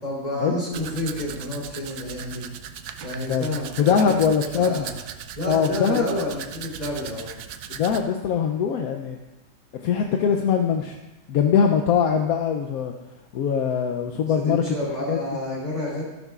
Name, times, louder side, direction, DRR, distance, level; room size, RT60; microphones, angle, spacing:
voice 1, 0.0-2.4 3.0-4.9 5.4-7.3 14.4-16.0, left 1 dB, 25° left, -4 dB, 3.6 m, -29 dB
Domestic sounds home sounds, 0.7-8.0, right 9 dB, 85° right, 1.2 m, -38 dB
voice 2, 3.8-4.9 5.5-6.1 7.7-9.2 9.8-11.0 11.3-12.9 13.3-14.6 15.1-15.2, left 7 dB, 70° left, 4 dB, 1.1 m, -22 dB
13.5 x 12.5 x 2.4 m, 1.0 s
omnidirectional pair, 1.6 m